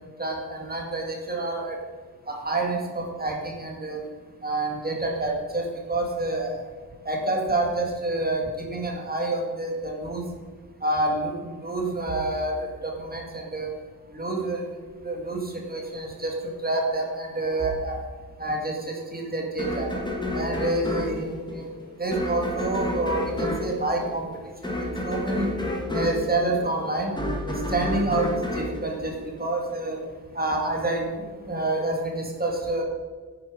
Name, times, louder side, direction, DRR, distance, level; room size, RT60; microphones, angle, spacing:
voice 1, 0.2-1.8 2.3-4.0 4.4-6.6 7.1-10.3 10.8-13.7 14.1-14.7 15.0-18.0 18.4-19.9 20.3-21.7 22.0-24.5 24.8-25.5 25.9-27.1 27.5-30.0 30.3-32.8, right 2 dB, 25° right, 0 dB, 2.0 m, -28 dB
sound 1, 19.6-29.8, left 1 dB, 10° left, 1.8 m, -30 dB
10.5 x 8.9 x 5.2 m, 1.5 s
wide cardioid pair, 155°, 37 cm